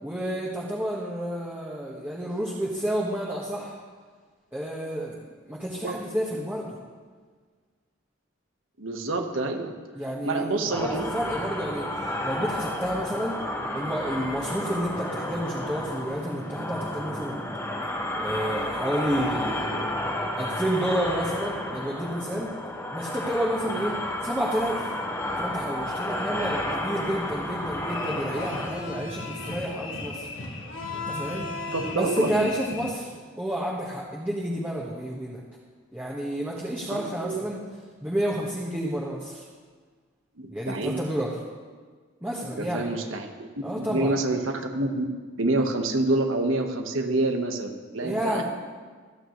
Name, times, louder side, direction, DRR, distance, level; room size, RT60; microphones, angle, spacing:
voice 1, 0.0-3.8 4.5-6.8 9.9-13.4 13.7-17.4 18.2-20.0 20.4-22.5 22.9-23.9 24.2-24.9 25.4-30.3 30.9-31.5 31.9-35.4 35.9-37.6 38.0-39.5 40.5-41.4 42.2-42.8 43.6-44.1 48.0-48.4, equal, 10° right, -5 dB, 1.5 m, -30 dB
voice 2, 8.8-9.7 10.2-11.0 23.7-23.8 31.7-32.5 36.9-37.4 40.4-41.0 42.4-43.5 43.7-45.0 45.4-48.4, right 2 dB, 85° right, 4 dB, 1.4 m, -27 dB
sound 1, 10.7-28.7, left 1 dB, 15° left, 1.6 m, -31 dB
sound 2, 27.9-32.9, left 3 dB, 70° left, 1.7 m, -35 dB
27.0 x 9.2 x 3.2 m, 1.5 s
head